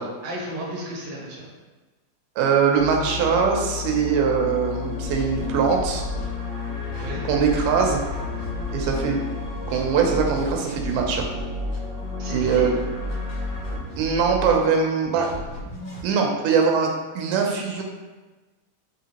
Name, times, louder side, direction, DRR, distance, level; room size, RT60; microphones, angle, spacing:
voice 1, 0.2-1.5 7.0-7.3 12.2-12.7, right 1 dB, 60° right, -4 dB, 1.1 m, -34 dB
voice 2, 2.4-6.0 7.3-8.0 8.7-9.2 9.7-11.3 12.3-12.7 14.0-15.3 16.0-17.8, right 6 dB, 85° right, 2 dB, 2.2 m, -22 dB
sound 1, 2.8-13.8, left 5 dB, 40° left, 1.3 m, -32 dB
sound 2, 5.0-6.2 6.7-9.0 9.5-11.8 12.2-14.5 15.0-16.0, right 2 dB, 65° left, 2.3 m, -35 dB
5.8 x 3.1 x 2.9 m, 1.2 s
omnidirectional pair, 3.6 m